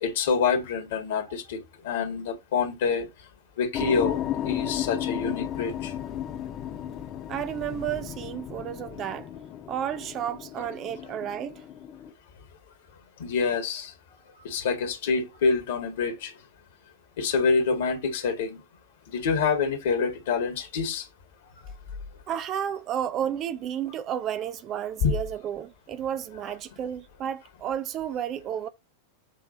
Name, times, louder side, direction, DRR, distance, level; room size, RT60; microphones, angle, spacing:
voice 1, 0.0-3.1 3.6-5.9 13.2-13.9 14.4-16.4 17.2-18.6 19.1-21.1 25.0-25.1, left 5 dB, 55° left, 2.1 m, -26 dB
sound 1, 3.7-12.1, left 11 dB, 35° left, 0.8 m, -34 dB
voice 2, 7.3-9.3 9.7-11.6 22.3-28.7, right 9 dB, 35° right, 0.6 m, -32 dB
7.6 x 3.4 x 5.3 m
figure-of-eight pair, 90°, 0 cm